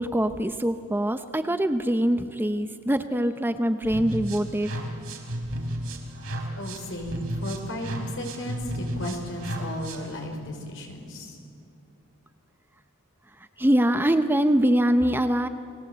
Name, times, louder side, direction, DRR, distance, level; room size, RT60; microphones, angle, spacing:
voice 1, 0.0-4.7 13.6-15.5, right 1 dB, 10° right, 9 dB, 0.7 m, -23 dB
sound 1, 3.8-10.2, right 1 dB, 70° right, 3.6 m, -34 dB
voice 2, 6.5-11.4, left 1 dB, 60° left, 3 dB, 4.8 m, -35 dB
30.0 x 20.0 x 8.1 m, 2.6 s
head